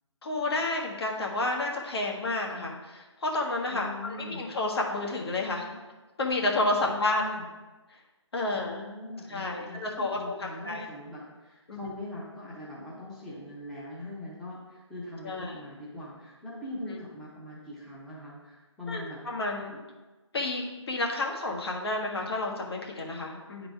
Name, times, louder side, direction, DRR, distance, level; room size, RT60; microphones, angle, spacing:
voice 1, 0.2-5.7 6.2-7.2 8.3-8.8 9.3-10.8 11.7-11.9 15.2-15.5 16.9-17.0 18.9-19.7 20.3-23.7, left 2 dB, 55° left, -1 dB, 1.5 m, -30 dB
voice 2, 3.7-4.5 6.8-7.5 8.5-19.2 19.7-19.8, left 1 dB, ahead, -10 dB, 0.7 m, -41 dB
9.4 x 4.0 x 4.6 m, 1.2 s
figure-of-eight pair, 160°, 16 cm